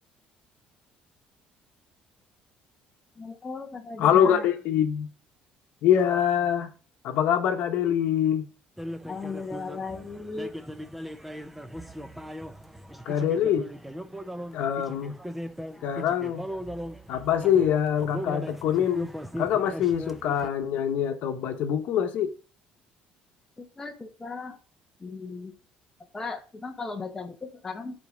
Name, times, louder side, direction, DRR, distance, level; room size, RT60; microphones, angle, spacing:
voice 1, 3.2-4.5 9.0-10.5 23.6-24.6 25.0-25.5 26.1-28.0, left 4 dB, 15° left, 0.9 m, -37 dB
voice 2, 4.0-5.1 5.8-6.7 7.0-8.5 13.0-13.7 14.5-15.2 15.8-16.5 17.1-19.1 19.4-22.3, left 9 dB, 60° left, 1.1 m, -24 dB
sound 1, 8.8-20.5, equal, 5° right, 0.5 m, -38 dB
10.5 x 4.2 x 5.0 m
cardioid pair, 165°, 3 cm